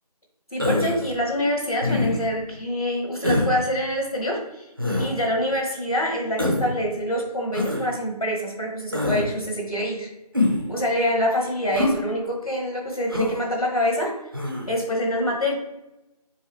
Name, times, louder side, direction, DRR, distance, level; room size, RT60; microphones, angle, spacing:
voice 1, 0.5-4.7 5.0-10.1 10.7-14.1 14.7-15.5, equal, 60° left, 0 dB, 1.3 m, -26 dB
Human voice, 0.6-1.1 1.8-2.3 3.2-3.6 4.8-5.1 6.4-6.7 7.5-7.9 8.9-9.3 10.3-10.7 11.7-12.0 13.1-13.4 14.3-14.7, left 2 dB, 35° right, 0.6 m, -24 dB
4.7 x 3.6 x 3.1 m, 0.91 s
figure-of-eight pair, 170°, 21 cm